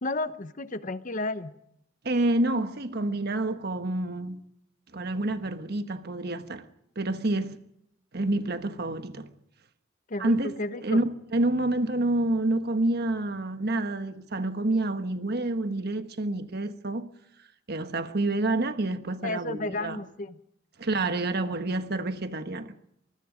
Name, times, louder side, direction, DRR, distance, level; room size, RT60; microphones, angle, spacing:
voice 1, 0.0-1.5 10.1-11.0 19.2-20.4, left 2 dB, 40° left, 0.9 m, -32 dB
voice 2, 2.0-4.4 4.9-6.7 7.0-7.6 8.1-9.3 10.2-10.5 10.8-17.1 17.7-20.0 20.8-22.7, right 2 dB, 55° right, 1.3 m, -28 dB
24.5 x 21.0 x 5.1 m
head